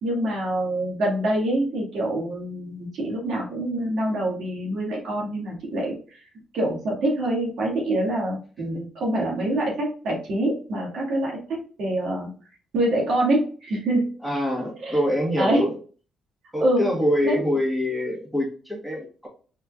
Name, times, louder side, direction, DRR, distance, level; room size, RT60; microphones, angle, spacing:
voice 1, 0.0-5.9 6.5-12.3 12.7-14.0 14.8-15.0 15.4-15.7 16.6-16.8 17.2-17.5, right 1 dB, 70° right, -2 dB, 2.2 m, -25 dB
voice 2, 14.2-15.8 16.5-19.3, left 1 dB, ahead, -2 dB, 1.7 m, -25 dB
4.4 x 4.4 x 2.5 m, 0.39 s
cardioid pair, 90°, 0 cm